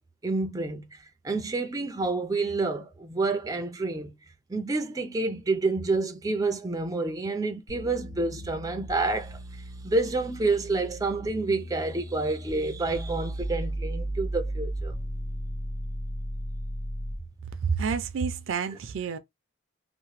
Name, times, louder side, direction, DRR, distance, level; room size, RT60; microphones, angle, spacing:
voice 1, 0.2-1.0 1.2-4.2 4.5-14.9 18.7-18.8, right 3 dB, 15° right, 0.4 m, -28 dB
sound 1, 7.7-17.3, right 1 dB, 60° left, 0.9 m, -35 dB
voice 2, 17.6-19.2, right 5 dB, 75° right, 0.4 m, -29 dB
2.9 x 2.1 x 3.0 m
head